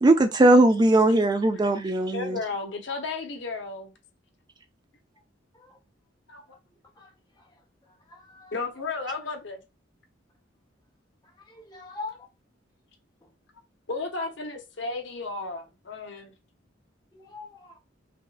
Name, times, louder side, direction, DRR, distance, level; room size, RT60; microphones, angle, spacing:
voice 1, 0.0-2.4, right 2 dB, 20° right, 0.3 m, -19 dB
voice 2, 2.1-3.9 6.3-6.4 8.5-9.6 13.9-16.3, left 3 dB, 65° left, 0.9 m, -33 dB
voice 3, 8.1-8.5 11.5-12.3 17.1-17.8, left 3 dB, 20° left, 1.3 m, -42 dB
5.3 x 2.3 x 2.4 m
head